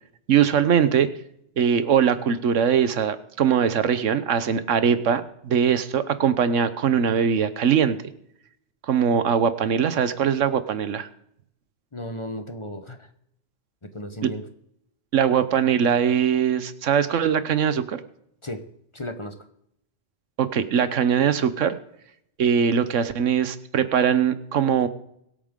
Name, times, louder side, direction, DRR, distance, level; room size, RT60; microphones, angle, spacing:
voice 1, 0.3-1.1 1.6-8.0 8.9-11.1 14.2-14.3 15.1-18.0 20.4-21.8 22.4-24.9, right 7 dB, 85° right, 13 dB, 1.3 m, -21 dB
voice 2, 11.9-13.1 13.8-14.5 18.4-19.4, left 1 dB, 25° left, 7 dB, 1.0 m, -35 dB
22.5 x 8.6 x 3.7 m, 0.74 s
omnidirectional pair, 1.3 m